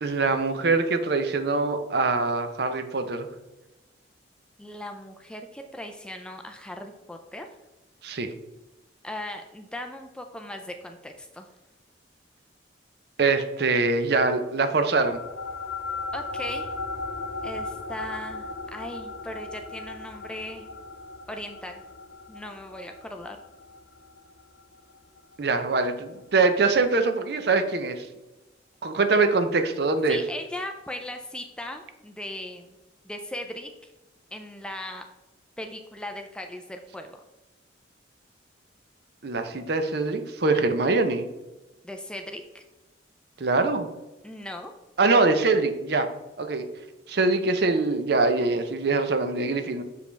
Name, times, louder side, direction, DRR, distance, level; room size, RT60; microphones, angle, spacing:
voice 1, 0.0-3.3 8.0-8.3 13.2-15.2 25.4-28.1 28.8-30.2 39.2-41.3 43.4-43.9 45.0-46.1 46.4-46.7 47.1-49.8, right 3 dB, 55° right, 8 dB, 0.6 m, -23 dB
voice 2, 4.6-7.5 9.0-11.5 16.1-16.7 17.4-20.7 21.3-21.8 22.3-23.4 30.1-32.7 33.0-33.9 34.3-35.0 35.6-37.2 41.8-42.6 44.2-44.7, left 1 dB, 5° left, 4 dB, 0.4 m, -38 dB
sound 1, 14.9-25.7, left 3 dB, 75° left, 0.6 m, -37 dB
6.7 x 5.1 x 3.4 m, 1.1 s
head